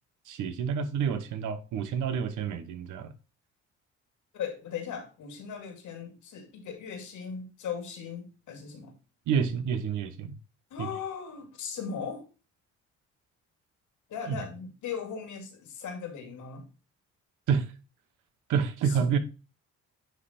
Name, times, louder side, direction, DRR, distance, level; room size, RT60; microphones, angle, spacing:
voice 1, 0.3-3.1 9.3-10.3 10.8-10.9 14.3-14.4 17.5-17.7 18.5-19.2, right 7 dB, 85° right, 1.1 m, -28 dB
voice 2, 4.3-8.9 10.7-12.2 14.1-16.7 18.8-19.2, left 7 dB, 80° left, 2.4 m, -38 dB
9.4 x 3.4 x 4.3 m
cardioid pair, 90°, 30 cm